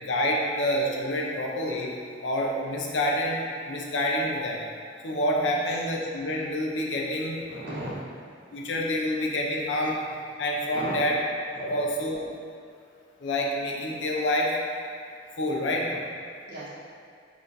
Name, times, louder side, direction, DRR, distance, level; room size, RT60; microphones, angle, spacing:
voice 1, 0.0-1.9 2.2-4.6 5.0-7.4 8.5-10.0 10.4-11.1 11.6-12.2 13.2-14.5 15.4-15.9, left 1 dB, 70° left, -1 dB, 0.6 m, -27 dB
voice 2, 5.5-5.8 7.5-8.2 10.6-11.0 11.5-11.8 16.5-16.7, right 1 dB, 65° right, -7 dB, 1.1 m, -37 dB
5.6 x 3.1 x 2.6 m, 2.2 s
head